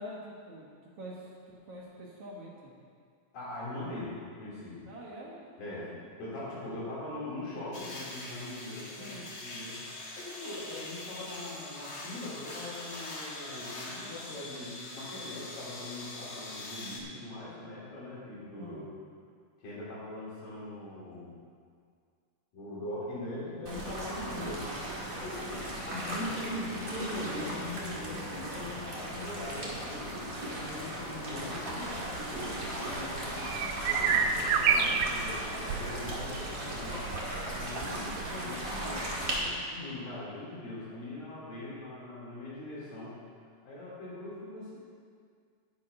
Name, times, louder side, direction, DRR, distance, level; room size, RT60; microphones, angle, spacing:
voice 1, 0.0-2.7 4.8-6.0 9.0-9.3 18.6-18.8 24.3-24.6 34.0-34.3, equal, 55° right, -4 dB, 2.0 m, -46 dB
voice 2, 3.3-4.8 5.6-5.9 6.2-9.8 10.1-18.8 19.6-21.4 22.5-24.6 25.2-33.5 33.8-37.0 37.5-43.2 43.6-44.7, left 1 dB, 80° left, -9 dB, 5.3 m, -41 dB
sound 1, 7.7-17.0, left 2 dB, 60° left, 1.0 m, -43 dB
sound 2, 23.6-39.4, right 1 dB, 35° right, 1.5 m, -37 dB
sound 3, 31.7-38.4, right 6 dB, 85° right, 2.4 m, -31 dB
9.7 x 9.4 x 5.4 m, 2.1 s
omnidirectional pair, 4.0 m